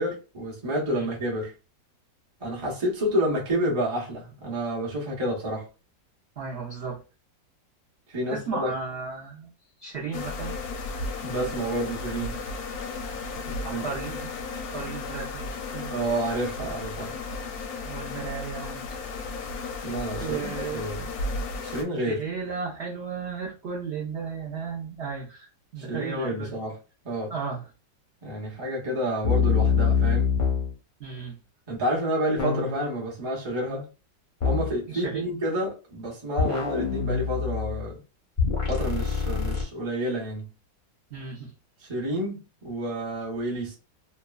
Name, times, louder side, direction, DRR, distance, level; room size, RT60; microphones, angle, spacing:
voice 1, 0.0-1.5 2.4-5.7 8.1-8.7 11.2-12.4 13.7-13.8 15.9-17.1 19.8-21.1 21.6-22.2 25.8-26.8 27.0-27.3 28.2-30.3 31.7-33.9 34.4-38.0 38.7-40.5 41.8-43.7, right 1 dB, 25° right, 0.6 m, -29 dB
voice 2, 6.4-7.0 8.3-9.5 9.8-10.6 13.4-14.3 14.7-15.9 17.9-18.8 20.2-20.9 22.1-25.5 25.7-26.5 27.3-27.6 31.0-31.3 34.9-35.3 36.5-36.6 41.1-41.5, right 5 dB, 60° right, 0.6 m, -34 dB
sound 1, 10.1-21.8, left 3 dB, 70° left, 0.9 m, -34 dB
sound 2, 29.2-30.7 32.4-32.9 34.4-34.7 36.4-37.9 38.4-39.6, left 6 dB, 50° left, 0.6 m, -25 dB
2.9 x 2.2 x 2.3 m
omnidirectional pair, 1.9 m